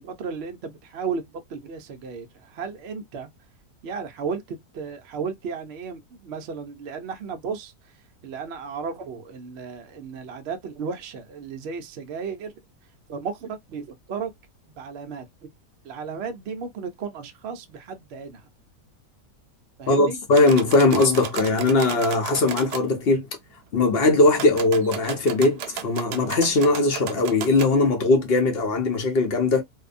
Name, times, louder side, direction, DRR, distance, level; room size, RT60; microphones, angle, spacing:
voice 1, 0.0-3.3 3.8-7.7 8.2-12.5 13.1-14.3 14.6-15.3 15.8-18.5 19.8-20.2, right 5 dB, 60° right, 0.7 m, -34 dB
voice 2, 19.9-23.3 23.7-29.6, left 2 dB, 55° left, 0.7 m, -20 dB
sound 1, 20.3-22.8 24.3-27.7, right 8 dB, 85° right, 1.2 m, -35 dB
2.7 x 2.2 x 2.4 m
omnidirectional pair, 1.7 m